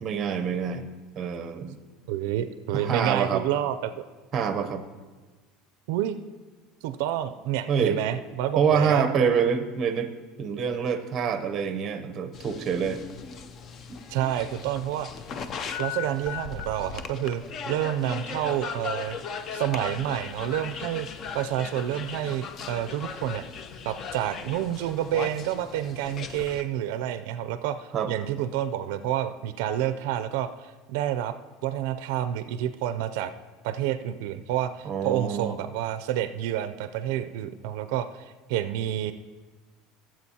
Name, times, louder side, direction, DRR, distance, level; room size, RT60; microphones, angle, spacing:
voice 1, 0.0-0.9 1.2-1.8 2.7-3.5 4.3-4.8 7.7-8.0 8.6-10.1 10.4-13.0 27.9-28.1 34.8-35.6, right 6 dB, 30° right, 9 dB, 0.7 m, -26 dB
voice 2, 2.1-4.0 5.9-6.2 6.8-9.1 14.1-15.1 15.8-19.2 19.5-21.1 21.3-23.4 23.8-31.3 31.6-33.3 33.6-39.1, right 11 dB, 70° right, 11 dB, 0.4 m, -29 dB
sound 1, 12.3-26.6, left 6 dB, 30° left, 0.4 m, -38 dB
17.0 x 7.6 x 2.8 m, 1.3 s
cardioid pair, 170°, 0 cm